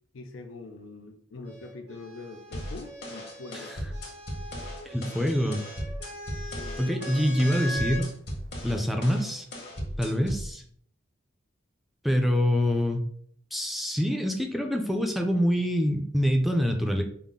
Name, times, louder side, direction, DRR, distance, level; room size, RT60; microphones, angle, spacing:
voice 1, 0.1-3.7 6.6-6.8, left 3 dB, 85° left, 5 dB, 0.5 m, -43 dB
sound 1, 1.5-8.1 9.2-9.8, equal, 85° right, 1.4 m, -41 dB
sound 2, 2.5-10.5, equal, 55° left, 1.3 m, -37 dB
voice 2, 4.8-5.6 6.8-8.1 8.6-9.5 10.0-10.6 12.0-13.0 13.5-17.0, equal, ahead, 3 dB, 0.4 m, -25 dB
5.5 x 2.1 x 3.6 m, 0.62 s
head